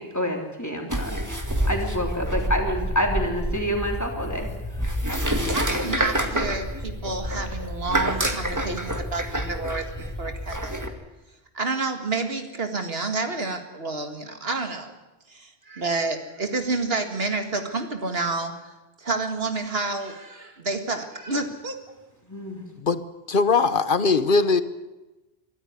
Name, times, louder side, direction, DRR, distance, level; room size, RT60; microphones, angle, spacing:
voice 1, 0.1-1.2 1.7-4.5 5.4-5.6 5.9-6.0 22.3-22.6, equal, 15° left, 1 dB, 3.5 m, -27 dB
sound 1, 0.9-10.9, equal, 15° right, 1.9 m, -28 dB
voice 2, 5.5-10.9 11.5-14.9 15.3-18.7 19.0-21.8, right 3 dB, 75° right, 6 dB, 2.1 m, -29 dB
voice 3, 23.3-24.6, left 4 dB, 55° left, 13 dB, 1.1 m, -20 dB
23.5 x 13.5 x 9.5 m, 1.1 s
omnidirectional pair, 1.0 m